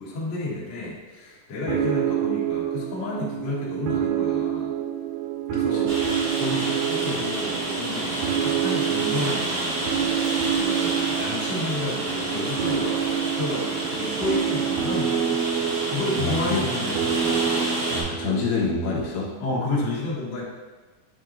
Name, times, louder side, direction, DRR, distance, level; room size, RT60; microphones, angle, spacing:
voice 1, 0.0-4.7 5.5-6.0 6.3-9.8 10.5-17.6 19.4-20.4, left 2 dB, 50° left, -7 dB, 1.5 m, -31 dB
sound 1, 1.7-19.1, right 9 dB, 85° right, 2.4 m, -27 dB
Rain, 5.9-18.0, right 1 dB, 55° right, 1.8 m, -29 dB
voice 2, 16.2-16.6 17.9-19.3, left 4 dB, 75° left, -4 dB, 2.4 m, -27 dB
8.2 x 4.5 x 2.6 m, 1.2 s
omnidirectional pair, 4.0 m